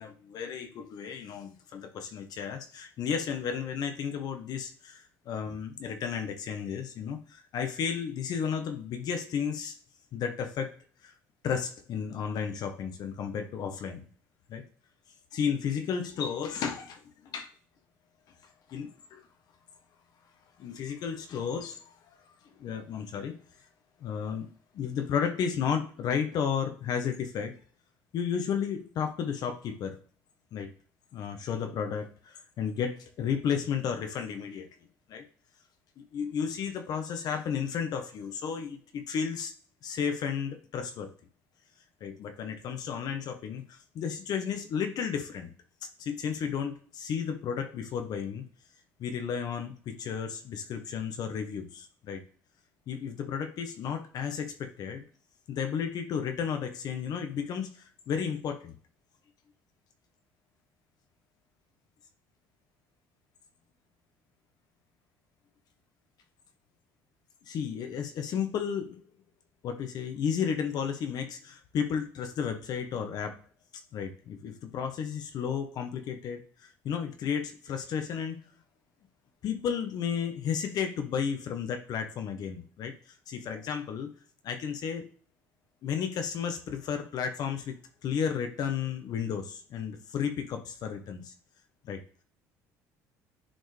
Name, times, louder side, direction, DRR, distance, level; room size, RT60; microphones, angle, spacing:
voice 1, 0.0-9.7 10.1-10.7 11.0-11.1 11.4-14.0 14.5-14.6 15.3-17.5 18.7-19.2 20.6-21.9 22.6-23.4 24.0-24.5 24.7-27.5 28.1-30.0 30.5-30.7 31.1-34.7 35.1-35.2 36.0-39.5 39.8-41.1 42.0-45.5 46.0-48.4 49.0-52.2 52.9-55.0 55.5-58.7 67.5-69.0 69.6-73.4 73.9-78.4 79.4-82.9 83.3-84.1 84.4-85.1 85.8-87.8 88.0-91.3 91.8-92.0, left 7 dB, 60° left, 6 dB, 1.3 m, -33 dB
10.0 x 4.4 x 3.5 m, 0.42 s
supercardioid pair, 75°, 8 cm